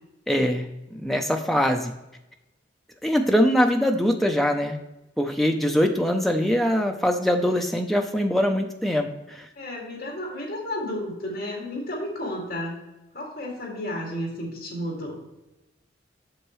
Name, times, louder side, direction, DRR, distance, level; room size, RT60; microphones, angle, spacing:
voice 1, 0.3-1.9 3.0-4.8 5.2-9.5, equal, ahead, 3 dB, 0.6 m, -23 dB
voice 2, 9.6-12.8 13.1-15.2, left 1 dB, 50° left, -2 dB, 2.5 m, -32 dB
7.8 x 6.5 x 3.2 m, 0.95 s
head